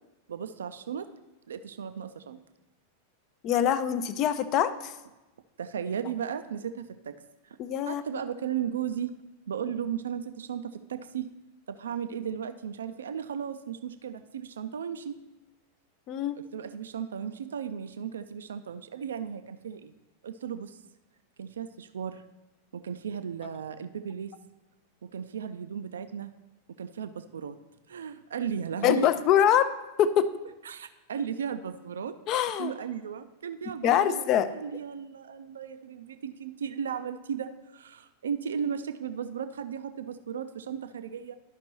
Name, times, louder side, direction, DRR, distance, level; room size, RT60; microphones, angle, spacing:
voice 1, 0.3-1.1 1.5-2.4 5.6-7.6 7.9-9.2 9.5-11.3 11.7-15.2 16.4-19.9 20.2-20.8 21.4-22.2 22.7-24.4 25.0-26.3 26.8-27.6 27.9-29.1 30.6-32.2 32.6-41.4, right 8 dB, 65° right, 11 dB, 0.3 m, -35 dB
voice 2, 3.4-4.9 7.6-8.2 16.1-16.4 28.8-29.7 30.0-30.3 32.3-32.7 33.8-34.5, left 10 dB, 40° left, 13 dB, 0.4 m, -24 dB
12.5 x 5.1 x 2.9 m, 1.0 s
figure-of-eight pair, 90°, 0 cm